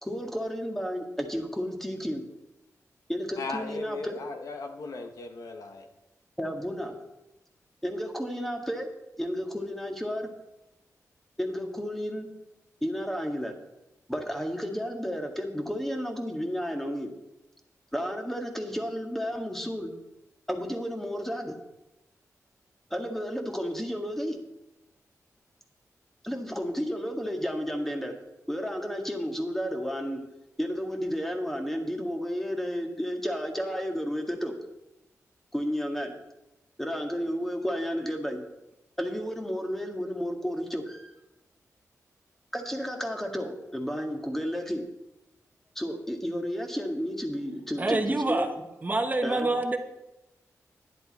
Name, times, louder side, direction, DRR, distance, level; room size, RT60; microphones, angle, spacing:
voice 1, 0.0-2.3 3.1-4.2 6.4-7.0 7.8-8.9 9.2-10.3 11.4-12.3 12.8-13.5 14.1-17.1 17.9-19.9 20.5-21.6 22.9-24.4 26.2-28.2 28.5-30.2 30.6-34.6 35.5-36.2 36.8-38.5 39.0-41.1 42.5-44.9 45.8-48.5 49.2-49.5, equal, 5° left, 3 dB, 1.9 m, -32 dB
voice 2, 3.4-5.8, left 3 dB, 80° left, 5 dB, 1.3 m, -37 dB
voice 3, 47.8-48.5 48.8-49.8, right 2 dB, 30° right, 5 dB, 1.2 m, -26 dB
11.0 x 10.5 x 4.3 m, 0.94 s
cardioid pair, 80°, 6 cm